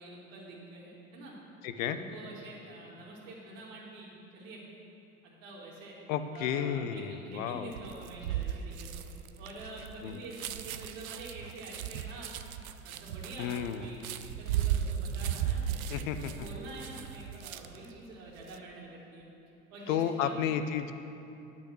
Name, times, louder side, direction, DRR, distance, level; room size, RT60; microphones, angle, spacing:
voice 1, 0.0-1.4 1.8-4.6 5.2-6.0 6.3-9.0 9.4-12.3 12.8-19.3 19.7-20.5, right 2 dB, 70° right, -4 dB, 2.4 m, -46 dB
voice 2, 1.6-2.0 6.1-7.7 10.0-10.2 13.4-13.9 15.9-16.3 19.9-21.0, left 9 dB, 70° left, 10 dB, 0.7 m, -32 dB
sound 1, 7.7-17.9 18.3-18.6, right 10 dB, 85° right, 0.5 m, -36 dB
10.0 x 6.0 x 6.1 m, 2.8 s
hypercardioid pair, 70°, 41 cm